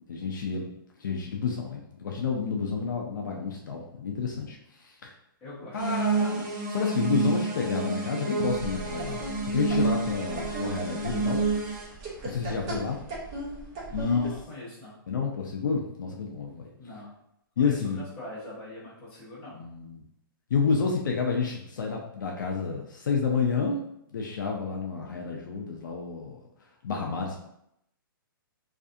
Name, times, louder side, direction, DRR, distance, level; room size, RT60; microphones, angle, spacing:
voice 1, 0.1-0.7 1.0-5.1 5.7-11.4 12.2-13.0 13.9-14.2 15.1-16.7 17.6-18.0 19.5-20.0 20.5-23.8 24.1-26.4 26.8-27.4, left 5 dB, 55° left, 0 dB, 0.4 m, -29 dB
voice 2, 5.4-6.6 14.0-15.0 16.8-17.1 17.6-19.6, left 2 dB, 10° left, -10 dB, 0.8 m, -43 dB
sound 1, 5.8-11.8, right 3 dB, 50° right, 1.0 m, -29 dB
sound 2, 8.5-14.4, right 2 dB, 15° right, 0.3 m, -38 dB
2.4 x 2.3 x 2.6 m, 0.77 s
hypercardioid pair, 175°, 12 cm